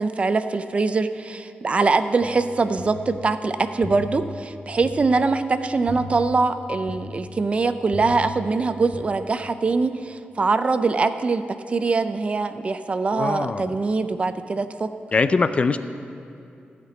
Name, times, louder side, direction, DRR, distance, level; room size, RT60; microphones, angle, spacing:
voice 1, 0.0-11.4 11.7-14.9, right 4 dB, 35° right, 10 dB, 0.4 m, -23 dB
sound 1, 2.2-9.0, left 4 dB, 65° left, 1.0 m, -38 dB
voice 2, 13.1-13.8 15.1-15.8, left 4 dB, 35° left, 11 dB, 0.4 m, -22 dB
14.5 x 5.9 x 8.3 m, 2.6 s
wide cardioid pair, 160°, 4 cm